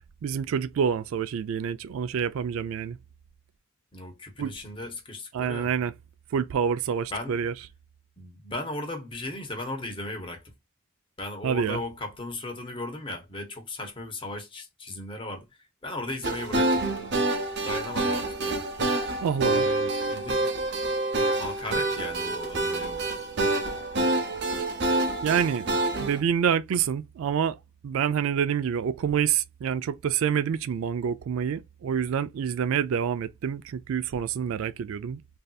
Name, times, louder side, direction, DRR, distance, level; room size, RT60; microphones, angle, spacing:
voice 1, 0.2-3.0 4.4-4.5 5.3-5.9 6.3-7.5 11.4-11.8 19.2-19.6 25.2-25.7 26.0-27.6 27.8-35.2, right 7 dB, 70° right, 0.3 m, -27 dB
voice 2, 3.9-5.8 7.1-7.4 8.2-10.5 11.2-16.8 17.6-18.6 19.4-20.5 21.4-23.0, left 1 dB, 25° left, 0.8 m, -36 dB
sound 1, 16.2-26.2, right 2 dB, 50° right, 0.7 m, -27 dB
3.2 x 2.6 x 2.3 m
head